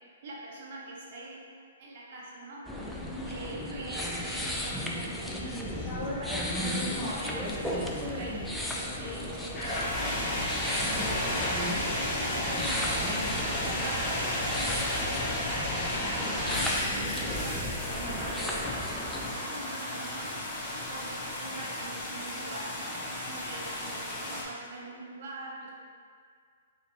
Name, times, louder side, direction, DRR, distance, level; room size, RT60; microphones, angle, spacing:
voice 1, 0.2-1.4 1.8-2.6 3.3-8.4 8.7-10.1 10.8-11.4 11.7-18.8 19.2-20.3 20.9-23.0 23.3-24.0 24.3-25.7, right 2 dB, 55° right, -3 dB, 0.9 m, -43 dB
sound 1, 2.7-19.3, equal, 5° left, 0.3 m, -35 dB
sound 2, 5.5-24.4, left 1 dB, 20° left, 0.7 m, -33 dB
sound 3, 6.3-13.0, left 2 dB, 80° left, 0.6 m, -47 dB
4.2 x 2.6 x 2.7 m, 2.1 s
hypercardioid pair, 140°, 0 cm